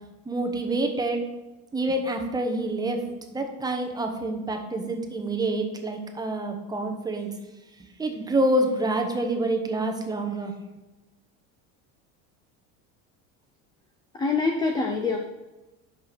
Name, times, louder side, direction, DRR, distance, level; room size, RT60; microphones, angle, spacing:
voice 1, 0.3-1.2 1.7-3.0 3.3-7.3 8.0-10.5, right 1 dB, 10° right, 4 dB, 0.8 m, -27 dB
voice 2, 14.1-15.2, left 4 dB, 10° left, 2 dB, 0.4 m, -25 dB
6.1 x 5.4 x 6.5 m, 1.1 s
cardioid pair, 150°, 37 cm